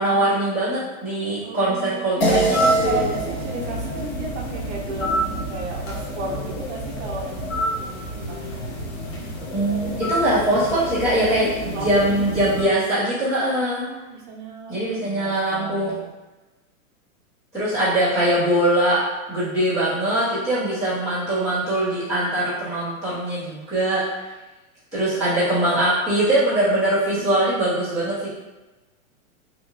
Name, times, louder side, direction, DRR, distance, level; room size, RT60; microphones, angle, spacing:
voice 1, 0.0-3.1 9.5-13.8 14.7-15.9 17.5-19.0 19.3-24.3 24.9-28.3, right 1 dB, 10° left, -15 dB, 0.3 m, -22 dB
voice 2, 1.4-9.6 11.7-12.6 13.5-16.1 20.3-20.4, right 3 dB, 50° right, -1 dB, 0.7 m, -34 dB
sound 1, 2.2-6.9, right 1 dB, 75° left, 0.9 m, -27 dB
sound 2, 2.5-12.6, equal, 45° left, 0.7 m, -29 dB
2.8 x 2.3 x 2.5 m, 1.1 s
hypercardioid pair, 130°, 43 cm